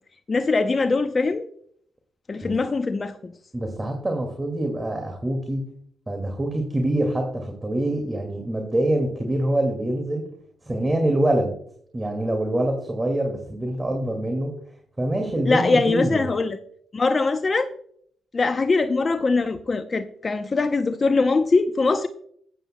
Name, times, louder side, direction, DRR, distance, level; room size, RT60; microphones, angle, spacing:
voice 1, 0.3-1.5 2.3-3.3 15.4-16.6 16.9-17.6 18.3-22.1, left 3 dB, 40° left, 9 dB, 0.6 m, -22 dB
voice 2, 3.5-5.6 6.1-10.2 10.6-11.5 11.9-14.5 15.0-16.2, right 1 dB, 20° right, 3 dB, 2.1 m, -25 dB
13.5 x 8.9 x 2.2 m, 0.62 s
supercardioid pair, 55°, 0 cm